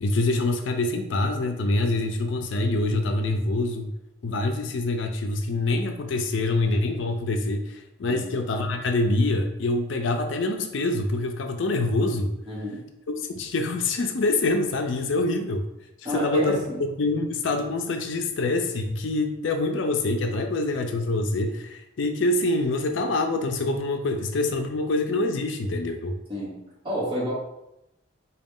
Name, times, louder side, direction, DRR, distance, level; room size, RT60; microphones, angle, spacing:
voice 1, 0.0-3.9 4.2-12.3 13.2-15.7 16.0-26.2, left 2 dB, 75° left, 5 dB, 0.4 m, -25 dB
voice 2, 12.5-12.8 15.2-15.3 16.0-16.8 26.3-26.6 26.8-27.3, right 1 dB, 25° right, -6 dB, 1.2 m, -29 dB
4.0 x 2.2 x 3.6 m, 0.87 s
head